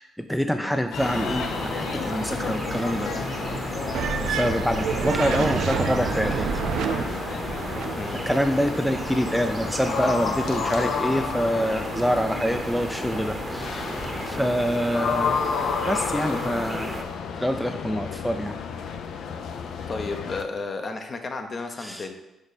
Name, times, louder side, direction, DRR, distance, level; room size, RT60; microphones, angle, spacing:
voice 1, 0.0-3.1 4.3-6.9 8.3-14.0 14.3-15.4 15.8-16.9 17.4-18.6 21.8-22.0, equal, ahead, 6 dB, 0.3 m, -26 dB
sound 1, 0.9-20.4, left 6 dB, 75° left, 0.5 m, -32 dB
sound 2, 1.0-17.0, right 2 dB, 20° right, 0.8 m, -34 dB
sound 3, 3.9-8.0, right 6 dB, 75° right, 0.5 m, -28 dB
voice 2, 8.0-8.3 14.3-14.6 19.9-22.1, left 3 dB, 40° left, 6 dB, 0.8 m, -33 dB
5.2 x 5.0 x 4.1 m, 0.95 s
cardioid pair, 90°, 0 cm